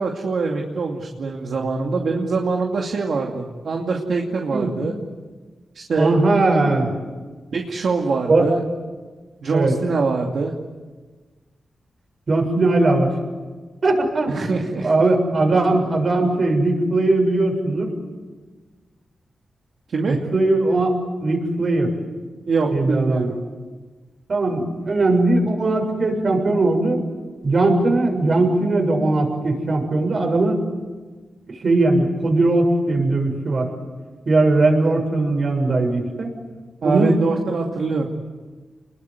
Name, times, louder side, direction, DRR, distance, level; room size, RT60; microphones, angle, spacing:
voice 1, 0.0-4.9 5.7-6.2 7.5-8.6 9.4-10.5 14.3-14.9 19.9-20.2 22.5-23.4 36.8-38.1, right 4 dB, 70° right, 1 dB, 2.6 m, -23 dB
voice 2, 6.0-6.9 8.3-8.4 9.5-9.7 12.3-13.1 13.8-14.5 14.8-17.9 20.1-21.9 22.7-23.3 24.3-27.0 27.4-30.6 31.5-33.7 34.3-36.3 36.8-37.2, right 2 dB, 55° right, 4 dB, 7.1 m, -19 dB
28.5 x 21.5 x 9.5 m, 1.4 s
cardioid pair, 90°, 0 cm